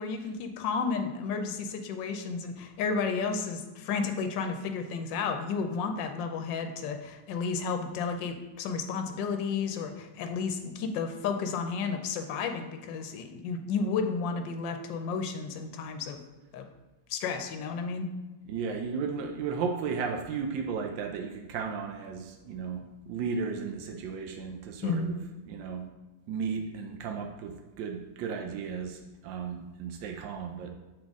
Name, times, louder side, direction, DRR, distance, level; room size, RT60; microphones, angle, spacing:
voice 1, 0.0-16.2 16.5-16.7 17.1-18.1 24.8-25.2, left 5 dB, 85° left, 6 dB, 1.3 m, -32 dB
voice 2, 18.5-25.2 25.5-25.8 26.3-30.7, right 5 dB, 85° right, 4 dB, 1.3 m, -34 dB
7.5 x 3.9 x 3.6 m, 1.2 s
omnidirectional pair, 1.9 m